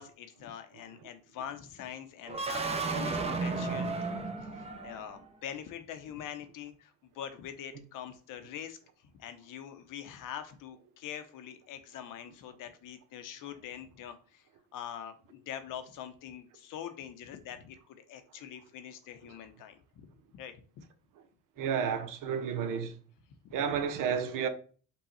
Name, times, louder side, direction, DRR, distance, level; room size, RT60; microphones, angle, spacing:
voice 1, 0.0-20.1 20.3-20.6, left 9 dB, 65° left, 0.9 m, -44 dB
sound 1, 2.2-5.2, right 3 dB, 20° right, 0.7 m, -33 dB
voice 2, 21.6-23.0 23.5-24.5, right 7 dB, 65° right, 1.0 m, -31 dB
5.5 x 2.4 x 4.1 m
cardioid pair, 100°, 35 cm